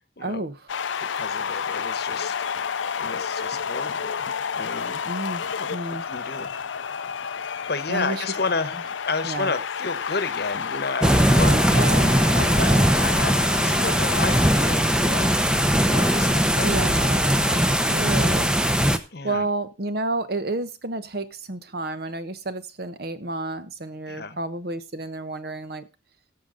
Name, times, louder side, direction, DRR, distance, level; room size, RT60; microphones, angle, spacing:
voice 1, 0.2-0.6 5.0-5.4 5.7-6.0 7.9-8.2 9.2-9.5 11.5-12.9 16.6-18.6 19.2-25.9, right 2 dB, 55° right, 1.0 m, -30 dB
sound 1, 0.7-16.4, left 6 dB, 85° left, 0.6 m, -31 dB
voice 2, 1.1-2.4 2.9-4.2 4.6-5.0 5.6-5.7 6.1-6.5 7.7-8.8 9.1-12.0 12.3-15.3 15.8-16.7 19.1-19.5 24.1-24.4, left 4 dB, 55° left, 1.0 m, -31 dB
sound 2, 11.0-19.0, equal, 5° right, 0.6 m, -20 dB
16.5 x 6.8 x 3.8 m
head